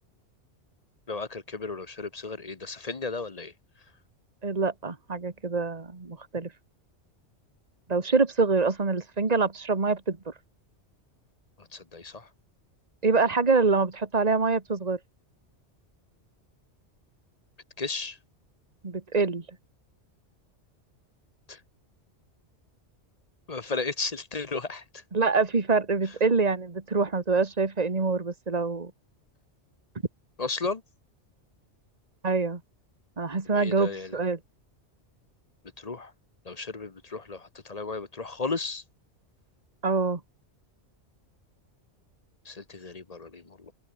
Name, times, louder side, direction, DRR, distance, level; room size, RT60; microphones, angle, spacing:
voice 1, 1.1-3.5 11.7-12.3 17.8-18.2 21.5-21.6 23.5-25.0 30.4-30.8 33.5-34.2 35.8-36.1 36.4-38.8 42.4-43.7, left 3 dB, 35° left, 1.1 m, -34 dB
voice 2, 4.4-6.5 7.9-10.2 13.0-15.0 18.8-19.4 25.1-28.9 32.2-32.6 33.2-34.4 39.8-40.2, right 4 dB, 35° right, 1.9 m, -25 dB
open air
omnidirectional pair, 1.2 m